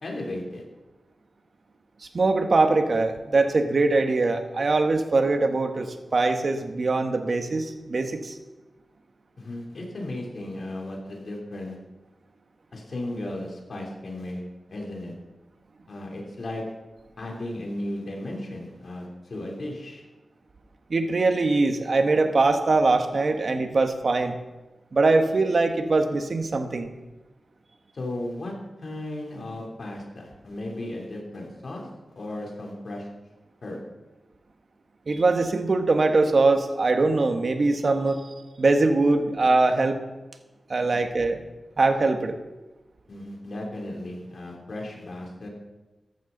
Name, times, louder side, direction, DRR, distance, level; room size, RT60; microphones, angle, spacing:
voice 1, 0.0-0.6 9.4-11.8 12.7-14.4 14.7-15.1 15.9-16.6 17.2-20.0 27.9-28.5 28.8-31.9 32.1-33.1 33.6-33.8 43.1-45.5, left 1 dB, 65° left, -1 dB, 3.5 m, -35 dB
voice 2, 2.0-8.4 20.9-24.3 24.9-26.9 35.1-38.3 38.6-40.0 40.7-41.4 41.8-42.4, right 3 dB, 55° right, 6 dB, 1.4 m, -22 dB
14.5 x 11.5 x 4.0 m, 1.1 s
cardioid pair, 60°, 0 cm